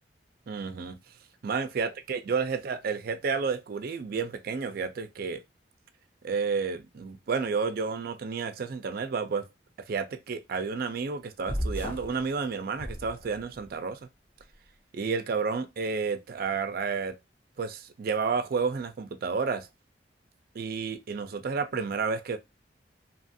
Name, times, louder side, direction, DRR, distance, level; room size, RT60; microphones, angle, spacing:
voice 1, 0.5-1.0 1.4-5.4 6.2-9.5 9.9-14.0 14.9-17.2 17.6-19.7 20.5-22.4, right 5 dB, 55° right, 0.4 m, -31 dB
sound 1, 11.5-12.2 12.7-13.7, equal, 30° left, 0.6 m, -34 dB
2.8 x 2.4 x 2.6 m
head